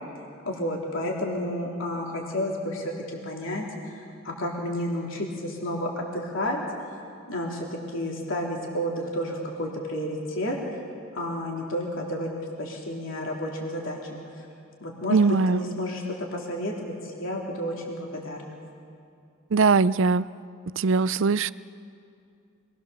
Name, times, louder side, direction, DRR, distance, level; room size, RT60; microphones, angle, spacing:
voice 1, 0.4-6.6 7.3-10.6 11.1-12.3 12.6-14.4 14.8-18.5, left 1 dB, 65° left, -2 dB, 3.2 m, -31 dB
voice 2, 15.1-15.6 19.5-20.3 20.8-21.5, right 4 dB, 60° right, 16 dB, 0.5 m, -21 dB
26.5 x 20.5 x 6.9 m, 2.4 s
head